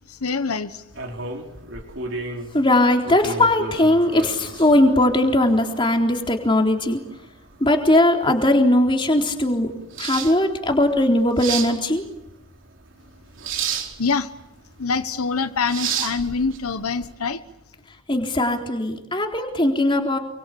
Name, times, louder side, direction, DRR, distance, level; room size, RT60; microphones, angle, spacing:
voice 1, 0.1-0.8 14.0-14.3 14.8-17.4, left 4 dB, 85° left, 11 dB, 1.2 m, -25 dB
sound 1, 0.9-17.1, right 6 dB, 60° right, 4.4 m, -33 dB
voice 2, 2.5-7.0 7.6-9.7 10.0-12.0 18.1-20.2, left 1 dB, 20° left, 3 dB, 3.8 m, -19 dB
29.0 x 24.0 x 8.5 m, 0.87 s
head